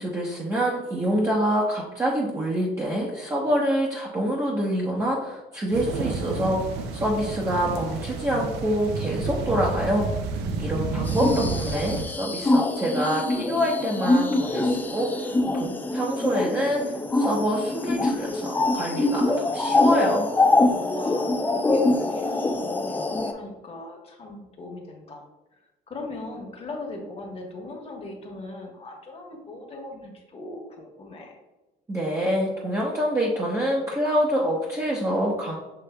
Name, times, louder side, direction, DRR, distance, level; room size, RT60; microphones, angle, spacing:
voice 1, 0.0-10.1 10.6-20.3 31.9-35.6, equal, 15° right, -5 dB, 0.8 m, -26 dB
sound 1, 5.7-12.0, right 4 dB, 90° right, 0.5 m, -30 dB
voice 2, 10.4-11.6 20.7-25.2 25.9-31.4, left 2 dB, 35° left, 1 dB, 1.2 m, -39 dB
sound 2, 11.1-23.3, left 2 dB, 10° left, 0.3 m, -24 dB
6.8 x 3.2 x 2.2 m, 1.1 s
cardioid pair, 110°, 17 cm